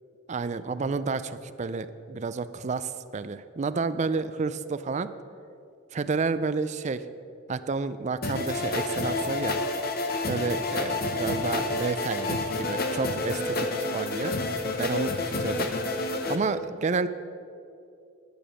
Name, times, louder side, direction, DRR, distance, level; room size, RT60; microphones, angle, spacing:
voice 1, 0.3-5.1 5.9-7.0 7.5-9.6 10.3-14.3 14.8-15.1 15.4-15.7 16.3-17.1, right 4 dB, 40° right, 13 dB, 0.4 m, -30 dB
sound 1, 8.2-16.4, left 2 dB, 50° left, 0.9 m, -29 dB
11.0 x 6.9 x 6.3 m, 2.5 s
head